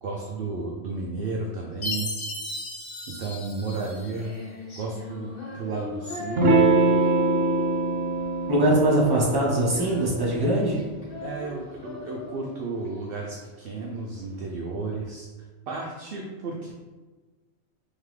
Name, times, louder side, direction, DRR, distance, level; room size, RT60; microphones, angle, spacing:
voice 1, 0.0-2.1 3.1-4.3 4.7-6.5 11.2-16.7, right 3 dB, 60° right, -1 dB, 0.6 m, -33 dB
Chime, 1.8-4.3, left 2 dB, 70° left, 1.0 m, -35 dB
Female singing, 3.6-14.6, left 3 dB, 45° left, 1.3 m, -40 dB
Electric guitar / Strum, 6.4-11.5, right 3 dB, 80° right, 1.0 m, -24 dB
voice 2, 8.5-10.8, right 1 dB, 20° right, -5 dB, 0.9 m, -22 dB
3.7 x 3.6 x 3.2 m, 1.3 s
omnidirectional pair, 1.3 m